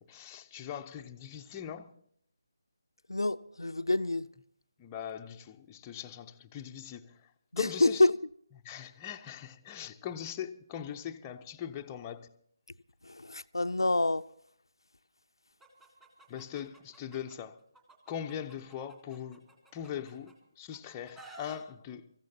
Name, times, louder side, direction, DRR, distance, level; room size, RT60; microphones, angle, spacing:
voice 1, 0.0-1.9 4.8-8.0 8.6-12.3 16.3-17.6 18.1-22.1, left 9 dB, 15° left, 0.6 m, -41 dB
voice 2, 3.1-4.3 7.5-8.1 13.0-14.2, left 2 dB, 90° left, 0.5 m, -27 dB
Chicken rooster, 15.6-17.4 17.7-20.3 20.7-21.6, right 2 dB, 10° right, 2.1 m, -53 dB
25.0 x 15.0 x 2.8 m
figure-of-eight pair, 155°, 2 cm